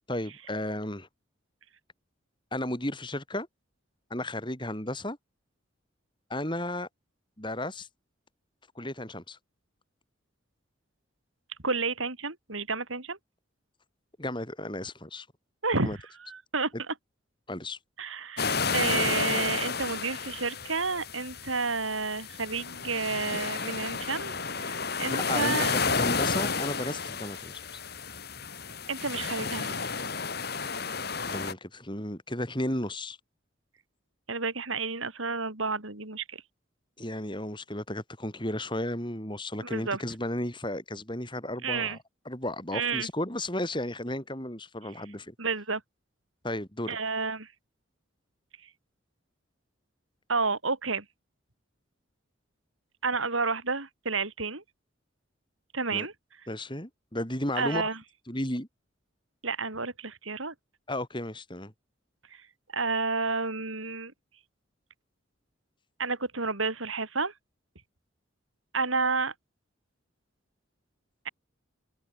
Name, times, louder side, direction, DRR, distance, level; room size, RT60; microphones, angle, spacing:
voice 1, 0.1-1.1 2.5-3.5 4.1-5.2 6.3-6.9 7.4-7.9 8.8-9.4 14.2-15.3 15.8-16.0 17.5-17.8 25.1-27.5 31.3-33.2 37.0-42.0 42.3-45.3 46.4-47.0 55.9-56.1 56.5-57.9 58.3-58.7 60.9-61.7, left 1 dB, 25° left, 7.3 m, -34 dB
voice 2, 11.6-13.2 15.6-16.9 18.0-25.7 28.9-29.9 34.3-36.4 39.6-40.0 41.6-42.0 42.7-43.1 45.4-45.8 46.9-47.5 48.6-48.7 50.3-51.0 53.0-54.6 55.7-56.1 57.5-58.0 59.4-60.5 62.3-62.5 62.7-64.1 66.0-67.3 68.7-69.3, right 4 dB, 85° right, 4.8 m, -31 dB
sound 1, 18.4-31.5, left 5 dB, 50° left, 3.1 m, -31 dB
head